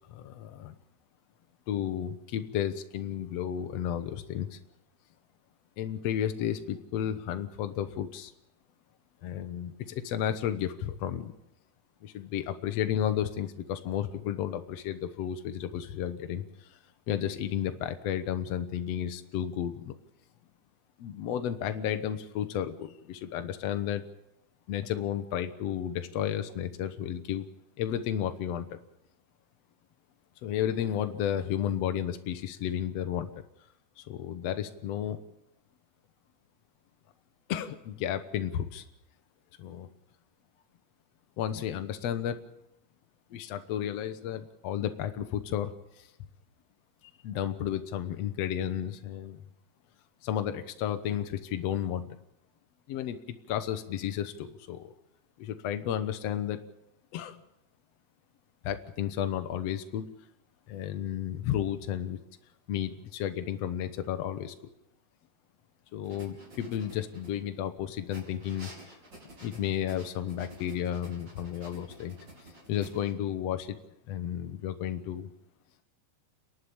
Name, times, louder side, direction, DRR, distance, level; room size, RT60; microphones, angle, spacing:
voice 1, 0.1-0.7 1.7-4.6 5.8-8.3 9.2-11.3 12.0-16.8 17.1-20.0 21.0-24.1 24.7-27.4 27.8-28.8 30.4-33.3 34.0-35.2 37.5-38.8 39.6-39.9 41.4-42.4 43.3-46.1 47.2-49.4 50.2-52.0 52.9-54.9 55.4-56.6 57.1-57.4 58.6-60.1 60.7-62.2 62.7-64.5 65.9-68.7 69.4-72.1 72.7-73.8 74.1-75.3, left 10 dB, 75° left, 8 dB, 1.5 m, -32 dB
sound 1, 66.0-67.6 68.1-73.1, right 1 dB, 30° right, 5.6 m, -51 dB
29.5 x 11.5 x 8.6 m, 0.89 s
omnidirectional pair, 4.3 m